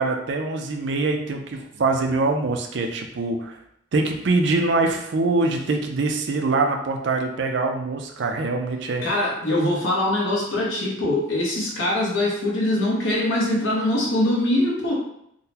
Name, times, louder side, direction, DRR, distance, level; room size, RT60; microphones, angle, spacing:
voice 1, 0.0-3.6 3.9-9.0, right 3 dB, 60° right, 3 dB, 0.4 m, -24 dB
voice 2, 9.0-14.9, left 1 dB, 70° left, -4 dB, 1.0 m, -23 dB
3.7 x 2.1 x 2.8 m, 0.74 s
head